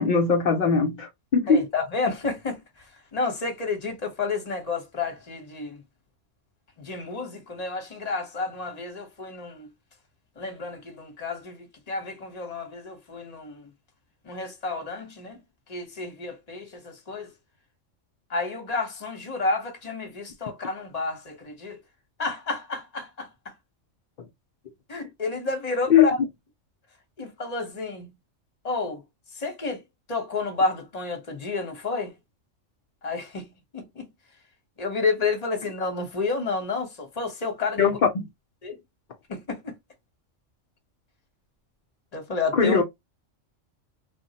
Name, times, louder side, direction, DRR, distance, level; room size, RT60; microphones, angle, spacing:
voice 1, 0.0-1.6 25.9-26.1 37.8-38.2 42.5-42.8, left 6 dB, 60° left, 0.5 m, -20 dB
voice 2, 1.5-2.8 3.1-5.8 6.8-9.7 10.4-13.7 14.2-15.4 15.7-17.3 18.3-21.8 22.2-23.5 24.9-26.2 27.2-28.1 28.6-29.0 29.3-29.8 30.1-32.1 33.0-34.1 34.8-38.0 38.6-38.8 39.3-39.8 42.1-42.8, left 3 dB, 35° left, 0.9 m, -30 dB
3.4 x 2.0 x 2.6 m
omnidirectional pair, 1.3 m